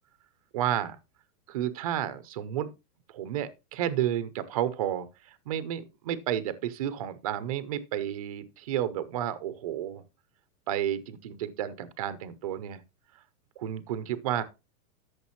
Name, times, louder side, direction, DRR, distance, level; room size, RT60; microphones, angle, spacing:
voice 1, 0.5-1.0 1.5-2.7 3.1-5.1 5.5-10.0 10.7-12.8 13.6-14.4, right 11 dB, 25° right, 0.5 m, -31 dB
12.5 x 6.5 x 3.0 m
supercardioid pair, 170°, 47 cm